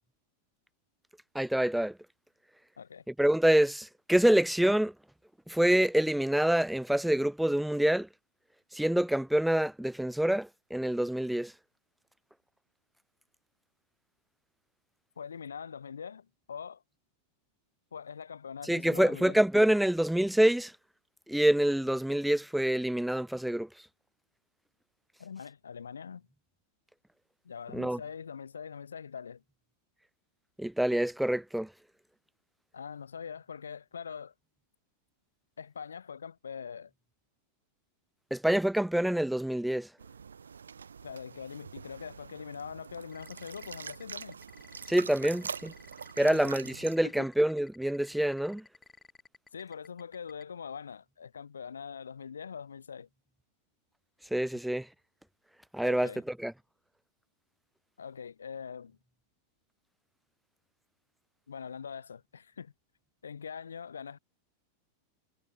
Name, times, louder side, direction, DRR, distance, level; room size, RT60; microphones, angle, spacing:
voice 1, 1.3-2.0 3.1-4.9 5.5-8.1 8.7-11.5 18.7-20.7 21.3-23.7 27.7-28.0 30.6-31.7 38.3-39.9 44.9-45.7 46.2-48.6 54.3-54.9 55.7-56.5, right 1 dB, ahead, 0.6 m, -26 dB
voice 2, 15.2-16.8 17.9-19.4 25.2-26.3 27.4-29.4 32.7-34.3 35.6-36.9 41.0-44.4 46.2-46.6 47.2-47.3 49.5-53.1 55.8-56.2 58.0-59.0 61.5-62.7 63.2-64.2, left 6 dB, 70° left, 1.8 m, -43 dB
sound 1, 40.0-47.0, right 6 dB, 70° right, 5.7 m, -44 dB
sound 2, 43.1-50.4, left 4 dB, 15° left, 5.7 m, -55 dB
figure-of-eight pair, 90°, 0 cm